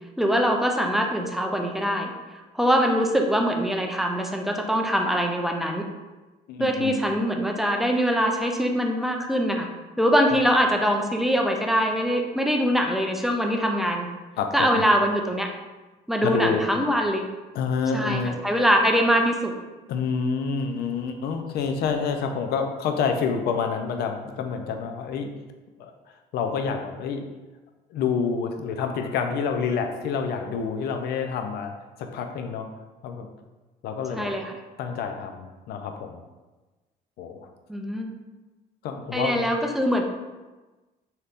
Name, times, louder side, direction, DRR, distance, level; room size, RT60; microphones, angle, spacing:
voice 1, 0.2-2.1 2.5-5.8 6.6-9.7 10.0-14.1 14.5-15.5 16.1-17.2 17.9-19.5 34.1-34.5 37.7-38.1 39.1-40.0, equal, ahead, 2 dB, 0.3 m, -23 dB
voice 2, 6.5-7.0 14.4-14.8 16.2-16.7 17.5-18.4 19.9-25.3 25.8-25.9 26.3-27.2 27.9-31.7 32.0-32.7 33.0-33.3 33.8-34.4 34.8-36.2 37.2-37.4 38.8-39.5, left 5 dB, 70° left, 5 dB, 0.4 m, -28 dB
3.4 x 2.8 x 2.4 m, 1.2 s
cardioid pair, 110°, 17 cm